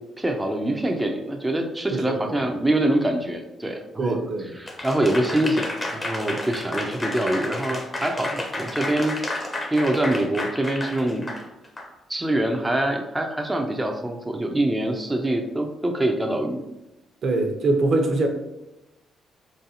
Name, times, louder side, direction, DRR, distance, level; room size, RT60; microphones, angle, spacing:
voice 1, 0.2-5.7 5.9-9.2 9.7-11.3 12.1-16.6, right 1 dB, 10° right, 2 dB, 0.4 m, -24 dB
voice 2, 1.9-2.4 4.0-4.5 17.2-18.3, right 2 dB, 55° right, 4 dB, 0.6 m, -23 dB
Applause / Crowd, 4.7-11.9, left 2 dB, 25° left, 0.7 m, -31 dB
4.0 x 3.2 x 2.8 m, 0.97 s
cardioid pair, 90°, 0 cm